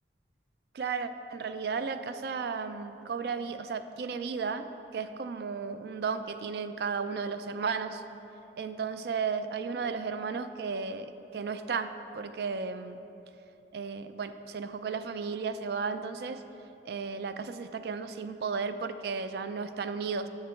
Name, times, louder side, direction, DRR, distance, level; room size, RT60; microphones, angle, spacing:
voice 1, 0.7-4.7 4.9-8.0 8.6-13.0 13.7-16.4 16.9-20.3, right 5 dB, 60° right, 10 dB, 0.3 m, -34 dB
6.9 x 6.5 x 4.4 m, 2.9 s
head